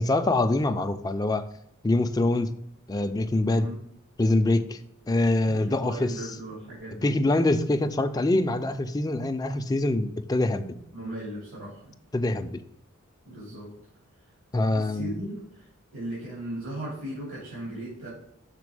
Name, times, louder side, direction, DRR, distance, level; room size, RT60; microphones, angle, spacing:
voice 1, 0.0-1.4 1.8-2.5 2.9-3.7 4.2-4.8 5.1-6.2 7.0-10.8 12.1-12.6 14.5-15.1, left 2 dB, 20° left, 7 dB, 0.4 m, -24 dB
voice 2, 5.5-7.1 10.9-11.9 13.2-13.7 14.7-18.1, right 1 dB, 80° right, -7 dB, 2.9 m, -37 dB
6.0 x 4.5 x 4.8 m, 0.76 s
head